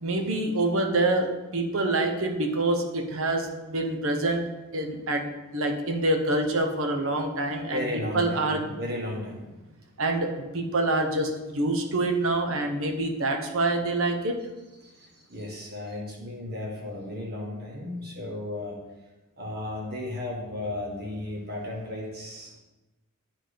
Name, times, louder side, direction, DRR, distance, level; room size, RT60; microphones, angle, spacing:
voice 1, 0.0-4.4 4.7-8.7 10.0-14.3, right 2 dB, 65° right, 4 dB, 0.9 m, -26 dB
voice 2, 7.7-9.7 14.8-18.8 19.4-22.5, left 1 dB, 45° right, -2 dB, 1.8 m, -35 dB
10.0 x 3.6 x 5.1 m, 1.1 s
head